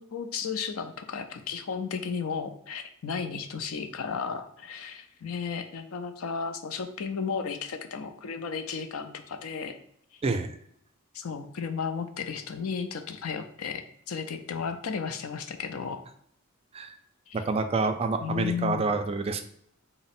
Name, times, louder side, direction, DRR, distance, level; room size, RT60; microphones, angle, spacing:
voice 1, 0.0-9.8 11.1-16.0 17.3-17.4 18.2-19.0, left 6 dB, 80° left, 7 dB, 0.5 m, -34 dB
voice 2, 10.2-10.5 16.7-17.0 17.3-19.4, right 3 dB, 30° right, 7 dB, 0.4 m, -28 dB
3.9 x 2.0 x 4.1 m, 0.67 s
head